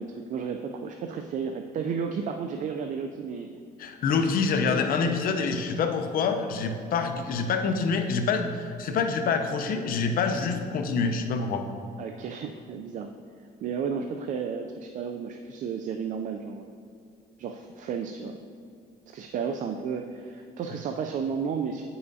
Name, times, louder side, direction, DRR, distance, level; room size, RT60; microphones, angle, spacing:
voice 1, 0.0-3.5 4.2-4.4 12.0-13.1 13.6-16.7 17.4-18.4 19.1-21.8, right 6 dB, 50° right, 5 dB, 0.4 m, -33 dB
voice 2, 3.8-11.6, left 5 dB, 55° left, 6 dB, 0.7 m, -26 dB
9.2 x 5.6 x 2.7 m, 2.3 s
cardioid pair, 110°, 17 cm